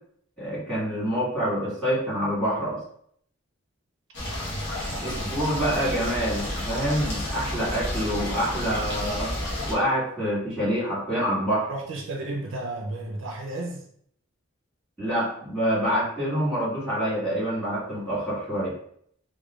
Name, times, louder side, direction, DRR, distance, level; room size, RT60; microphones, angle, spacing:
voice 1, 0.4-2.8 5.0-9.3 9.7-11.7 15.0-18.7, equal, 5° left, -11 dB, 1.4 m, -26 dB
sound 1, 4.1-9.7, left 1 dB, 55° left, 0.9 m, -31 dB
voice 2, 4.2-5.4 11.7-13.9, right 2 dB, 65° right, 1 dB, 0.4 m, -34 dB
3.0 x 2.1 x 2.3 m, 0.66 s
head